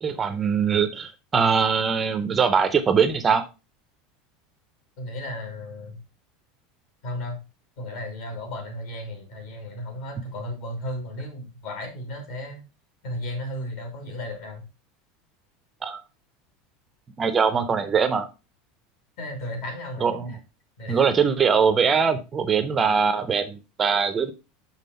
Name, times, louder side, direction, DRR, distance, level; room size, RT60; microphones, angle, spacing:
voice 1, 0.0-3.5 15.8-16.0 17.2-18.3 20.0-20.3 20.9-24.3, right 6 dB, 15° right, 10 dB, 0.5 m, -22 dB
voice 2, 5.0-6.0 7.0-7.4 7.8-12.6 13.0-14.6 19.2-20.4 20.8-21.1, left 1 dB, 60° left, 2 dB, 2.9 m, -34 dB
6.0 x 5.5 x 4.1 m, 0.28 s
supercardioid pair, 170°, 0 cm